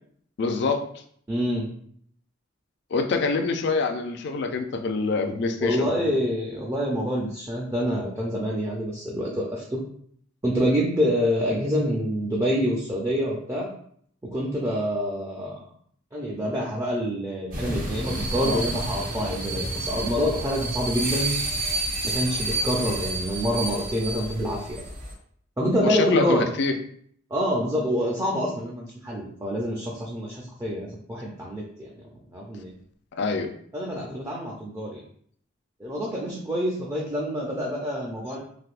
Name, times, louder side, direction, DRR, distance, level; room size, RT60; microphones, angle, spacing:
voice 1, 0.4-0.8 2.9-5.8 18.4-18.6 25.8-26.7 33.1-33.5, left 4 dB, 55° left, 6 dB, 0.3 m, -25 dB
voice 2, 1.3-1.7 5.6-9.8 10.4-13.7 14.2-15.6 16.1-21.3 22.0-24.8 25.6-26.4 27.3-31.9 32.3-32.7 33.7-35.0 35.8-38.4, equal, 15° right, -3 dB, 0.4 m, -27 dB
sound 1, 17.5-25.1, right 2 dB, 45° right, 0.9 m, -30 dB
3.4 x 2.6 x 2.4 m, 0.62 s
head